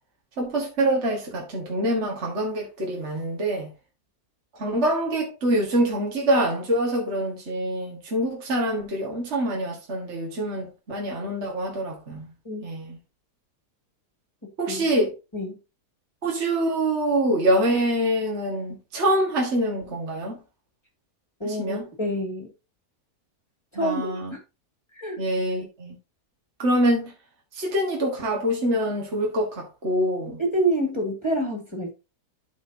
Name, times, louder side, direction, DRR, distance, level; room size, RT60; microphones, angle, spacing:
voice 1, 0.4-3.7 4.6-12.3 12.6-13.0 14.6-15.1 16.2-20.4 21.4-21.8 23.8-24.3 25.2-25.9 26.6-27.1 27.6-30.4, right 1 dB, 45° right, 1.9 m, -25 dB
voice 2, 14.4-14.9 15.3-15.6 21.4-22.5 23.7-24.4 24.9-25.2 30.4-31.9, right 1 dB, 15° left, 2.0 m, -27 dB
13.0 x 4.4 x 2.7 m
omnidirectional pair, 1.7 m